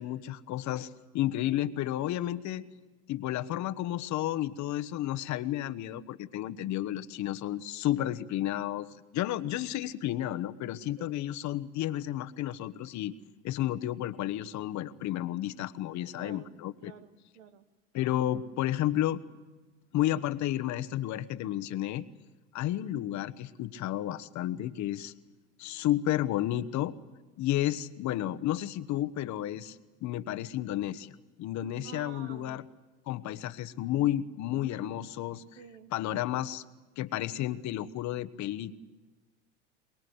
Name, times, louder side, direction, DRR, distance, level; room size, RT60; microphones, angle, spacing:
voice 1, 0.0-2.6 3.1-8.9 9.1-13.1 13.4-16.9 17.9-19.2 19.9-22.0 22.5-25.1 25.6-26.9 27.4-32.6 33.1-35.4 35.9-36.6 37.0-38.7, left 13 dB, 50° left, 13 dB, 1.2 m, -32 dB
voice 2, 16.0-16.6 16.8-17.6 31.8-32.6 35.6-35.9, right 8 dB, 75° right, 9 dB, 2.0 m, -50 dB
24.0 x 21.5 x 7.9 m, 1.2 s
hypercardioid pair, 85°, 36 cm